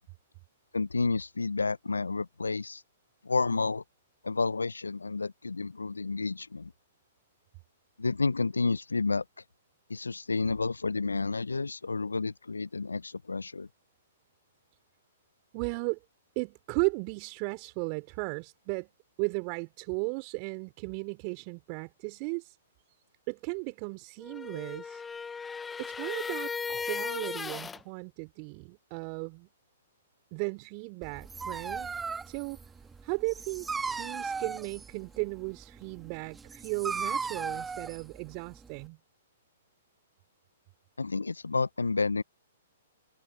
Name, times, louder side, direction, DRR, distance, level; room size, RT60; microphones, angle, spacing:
voice 1, 0.7-2.8 3.2-3.8 4.2-6.7 8.0-9.2 9.9-13.7 41.0-42.2, left 4 dB, 85° left, 0.6 m, -30 dB
voice 2, 15.5-16.0 16.3-18.9 19.2-22.6 23.3-25.0 25.8-29.5 30.3-31.9 32.3-32.6 33.0-39.0, right 36 dB, 40° right, 3.0 m, -35 dB
sound 1, 24.2-27.8, left 5 dB, 10° left, 0.7 m, -36 dB
Dog, 31.0-38.9, right 5 dB, 10° right, 2.0 m, -37 dB
figure-of-eight pair, 120°, 0 cm